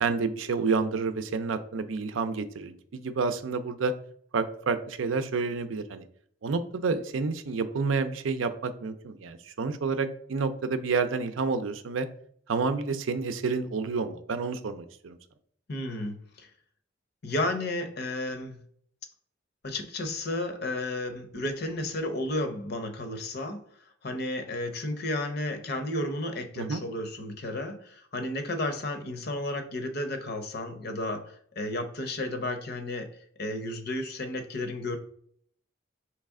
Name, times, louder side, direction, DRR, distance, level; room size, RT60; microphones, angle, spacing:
voice 1, 0.0-3.9 4.3-6.0 6.4-12.1 12.5-15.2 26.6-26.8, right 4 dB, 85° right, 10 dB, 0.5 m, -29 dB
voice 2, 15.7-16.5 17.2-18.6 19.6-23.6 24.0-33.1 33.4-35.0, left 1 dB, 55° left, 7 dB, 0.7 m, -32 dB
4.6 x 3.2 x 3.6 m, 0.62 s
head